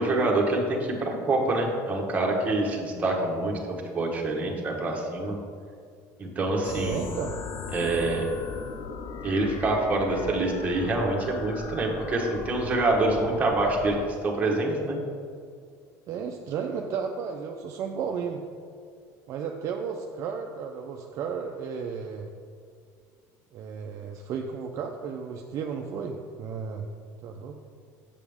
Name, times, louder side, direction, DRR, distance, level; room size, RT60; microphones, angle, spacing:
voice 1, 0.0-5.4 6.2-7.0 7.7-8.3 9.2-14.0 14.2-15.0, right 2 dB, 20° right, -1 dB, 1.2 m, -26 dB
sound 1, 6.6-14.1, left 5 dB, 40° left, 0.5 m, -38 dB
voice 2, 6.7-7.3 16.1-18.4 19.3-22.3 23.5-26.9 27.2-27.6, right 6 dB, 50° right, 2 dB, 0.5 m, -33 dB
7.1 x 7.0 x 3.5 m, 2.2 s
cardioid pair, 145°, 7 cm